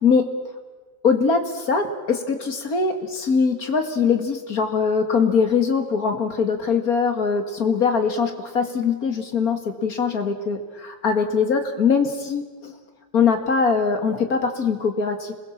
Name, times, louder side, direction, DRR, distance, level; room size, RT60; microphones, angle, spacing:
voice 1, 1.0-12.7 13.1-15.3, left 5 dB, 50° left, 6 dB, 2.3 m, -22 dB
27.5 x 21.0 x 7.3 m, 1.3 s
omnidirectional pair, 2.1 m